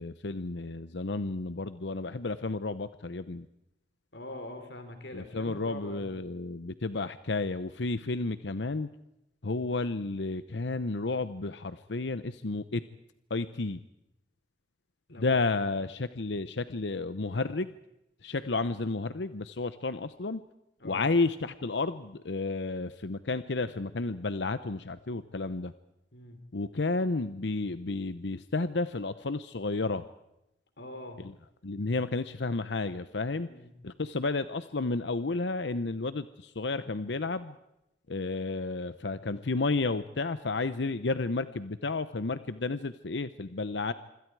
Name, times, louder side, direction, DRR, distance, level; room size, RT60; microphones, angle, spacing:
voice 1, 0.0-3.5 5.1-8.9 9.4-12.8 13.3-13.8 15.2-17.7 18.2-20.4 20.8-25.7 26.5-30.0 31.2-31.3 31.6-33.5 33.8-37.5 38.1-43.9, left 3 dB, 90° left, 12 dB, 0.8 m, -32 dB
voice 2, 4.1-6.1 15.1-15.6 20.8-21.1 26.1-26.4 30.8-31.2 33.5-33.7, left 1 dB, 70° left, 7 dB, 3.5 m, -44 dB
26.0 x 25.5 x 4.8 m, 0.86 s
head